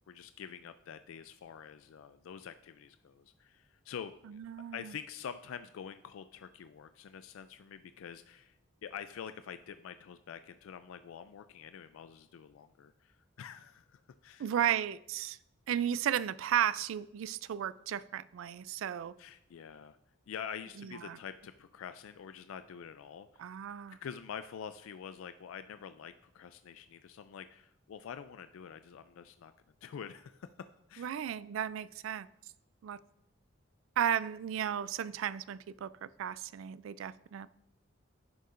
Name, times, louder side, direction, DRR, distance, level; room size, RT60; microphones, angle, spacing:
voice 1, 0.0-4.4 4.7-8.6 8.8-14.5 19.2-20.0 20.3-23.4 23.9-29.5 29.8-30.5 30.9-31.1, left 7 dB, 85° left, 11 dB, 0.3 m, -46 dB
voice 2, 4.3-4.9 14.4-15.4 15.7-19.1 20.8-21.2 23.4-24.0 31.0-32.3 32.8-33.0 34.0-37.5, right 9 dB, 75° right, 18 dB, 0.3 m, -34 dB
11.0 x 6.5 x 2.5 m, 0.82 s
head